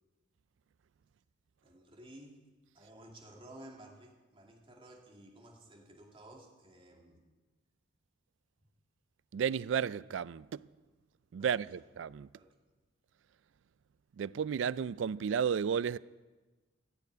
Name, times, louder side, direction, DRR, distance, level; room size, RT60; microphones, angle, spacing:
voice 1, 1.6-2.4 2.7-7.2 11.4-11.6 12.3-12.5, right 1 dB, 30° right, 2.3 m, -54 dB
voice 2, 9.3-10.6 11.3-12.3 14.2-16.0, right 7 dB, 75° right, 0.3 m, -33 dB
15.0 x 7.0 x 9.4 m
head